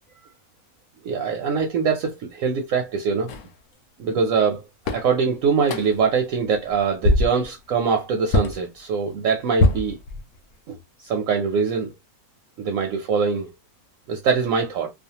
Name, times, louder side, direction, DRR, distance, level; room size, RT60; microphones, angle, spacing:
voice 1, 1.0-3.3 4.0-4.6 4.9-10.0 10.7-11.9 12.6-13.5 14.1-14.9, right 5 dB, 70° right, 0.9 m, -23 dB
sound 1, 3.3-3.5 4.4-4.5 4.9-5.1 5.7-6.1 6.5-6.7 7.0-7.5 8.3-8.6 9.6-10.5, left 2 dB, 80° left, 1.1 m, -22 dB
2.4 x 2.3 x 2.7 m
omnidirectional pair, 1.6 m